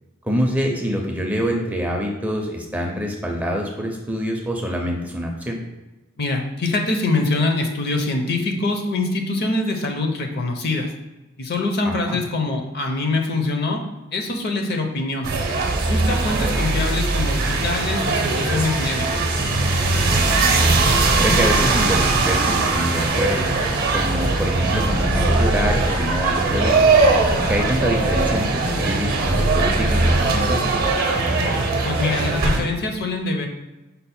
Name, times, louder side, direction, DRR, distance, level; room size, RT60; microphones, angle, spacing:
voice 1, 0.2-5.6 11.8-12.2 16.4-16.6 20.1-20.7 21.2-23.5 23.9-26.8 27.4-30.9, equal, 10° right, 1 dB, 0.4 m, -25 dB
voice 2, 6.2-10.9 11.4-13.8 14.1-15.3 15.9-19.2 31.8-33.5, left 2 dB, 50° left, 3 dB, 0.6 m, -24 dB
sound 1, 15.2-32.6, right 3 dB, 50° right, 0.7 m, -20 dB
5.4 x 2.1 x 4.2 m, 1.1 s
head